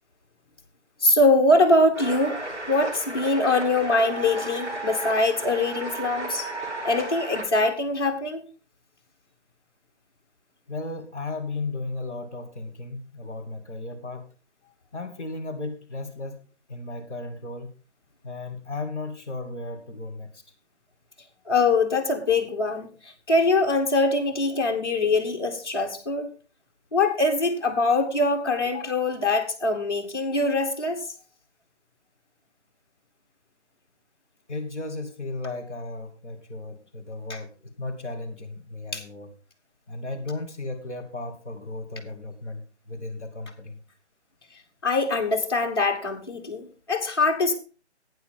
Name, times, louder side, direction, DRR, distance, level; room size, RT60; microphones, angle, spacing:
voice 1, 1.0-6.5 6.8-8.4 21.4-26.3 26.9-31.1 37.3-37.4 38.9-39.0 44.8-47.5, left 2 dB, 20° left, 0 dB, 1.4 m, -23 dB
sound 1, 1.9-7.4, right 2 dB, 90° right, 7.9 m, -34 dB
voice 2, 10.7-14.3 14.9-17.7 18.2-20.4 34.5-39.3 39.9-43.8, left 2 dB, 10° right, -9 dB, 0.9 m, -35 dB
11.5 x 9.3 x 3.7 m, 0.33 s
hypercardioid pair, 180°, 34 cm